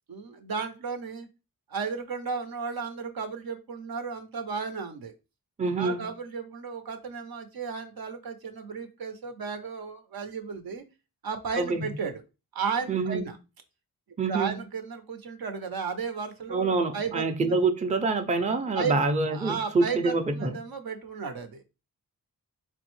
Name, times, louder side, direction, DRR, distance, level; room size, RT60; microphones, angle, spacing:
voice 1, 0.1-1.3 1.7-5.1 5.8-10.8 11.2-12.2 12.5-13.4 14.3-17.6 18.7-19.0 19.3-21.6, right 5 dB, 70° right, 0.7 m, -34 dB
voice 2, 5.6-6.0 11.6-11.9 12.9-13.3 14.2-14.6 16.5-20.6, right 3 dB, 20° right, 0.5 m, -26 dB
3.7 x 2.1 x 3.0 m
cardioid pair, 45°, 38 cm